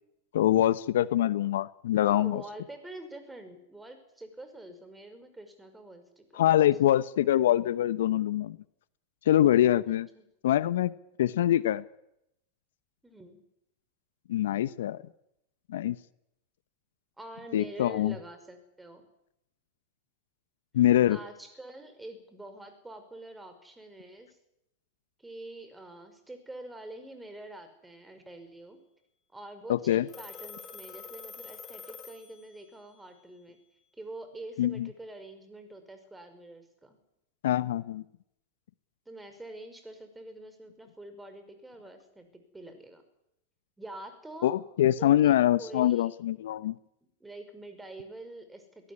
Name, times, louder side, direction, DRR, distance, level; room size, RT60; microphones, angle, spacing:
voice 1, 0.3-2.4 6.4-8.6 9.3-10.1 10.4-10.9 11.2-11.8 14.3-15.0 15.7-16.0 17.5-18.1 20.7-21.2 29.7-30.1 34.6-34.9 37.4-38.0 44.4-46.8, left 12 dB, 70° left, 17 dB, 0.8 m, -24 dB
voice 2, 2.0-6.4 9.9-10.3 13.0-13.4 17.2-19.1 21.1-24.4 25.2-28.8 29.3-33.6 33.9-37.0 39.1-43.0 43.8-44.6 45.0-46.1 47.2-48.9, right 1 dB, 10° right, 8 dB, 5.6 m, -46 dB
Telephone, 30.1-32.8, left 5 dB, 25° left, 4.8 m, -46 dB
22.0 x 18.0 x 9.8 m, 0.82 s
hypercardioid pair, 100°, 0 cm